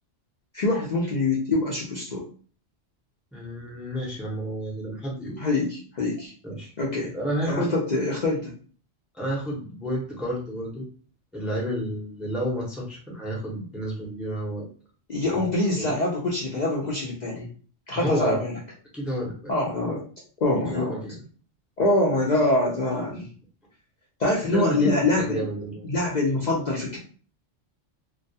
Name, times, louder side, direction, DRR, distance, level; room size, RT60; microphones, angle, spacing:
voice 1, 0.5-2.2 5.4-6.3 6.8-7.1 7.4-8.5 15.1-17.5 17.9-18.5 19.5-20.0 20.4-21.0 21.8-23.3 24.2-25.4 25.8-27.0, left 2 dB, 55° left, -4 dB, 0.5 m, -24 dB
voice 2, 3.3-5.4 6.4-6.7 7.1-7.7 9.1-10.8 11.3-14.7 15.3-15.5 15.8-16.0 17.9-18.4 18.9-19.5 20.7-21.1 24.5-25.9, equal, ahead, -4 dB, 0.5 m, -30 dB
2.3 x 2.2 x 2.7 m, 0.42 s
omnidirectional pair, 1.3 m